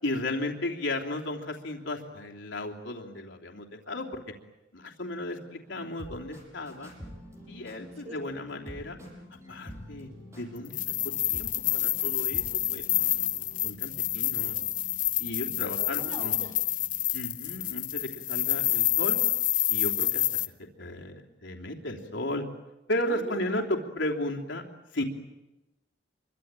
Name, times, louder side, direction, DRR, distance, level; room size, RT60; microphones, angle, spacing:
voice 1, 0.0-4.2 4.7-6.9 7.5-9.0 9.5-10.1 10.4-10.8 11.0-12.8 13.6-14.6 15.2-16.4 17.1-19.2 19.7-20.2 20.8-22.5 22.9-24.6 24.9-25.0, left 1 dB, 90° left, 1 dB, 3.2 m, -34 dB
sound 1, 5.6-13.6, equal, 15° right, 6.6 m, -47 dB
sound 2, 6.5-18.7, left 1 dB, 25° left, 4.2 m, -55 dB
sound 3, 10.6-20.5, left 14 dB, 45° left, 0.9 m, -28 dB
voice 2, 15.8-16.5 23.1-23.6, right 1 dB, 35° right, 5 dB, 3.8 m, -41 dB
26.0 x 24.0 x 9.0 m, 0.98 s
head